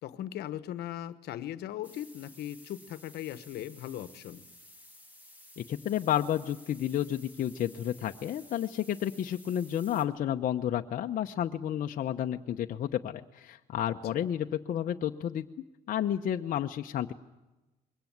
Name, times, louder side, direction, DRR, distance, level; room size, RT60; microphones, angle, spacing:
voice 1, 0.0-4.4, left 12 dB, 75° left, 14 dB, 1.1 m, -39 dB
sound 1, 1.8-10.1, left 1 dB, 10° right, 3.1 m, -54 dB
voice 2, 5.6-15.5 15.9-17.1, left 10 dB, 55° left, 4 dB, 0.8 m, -31 dB
22.0 x 17.5 x 9.3 m, 1.1 s
cardioid pair, 110°, 17 cm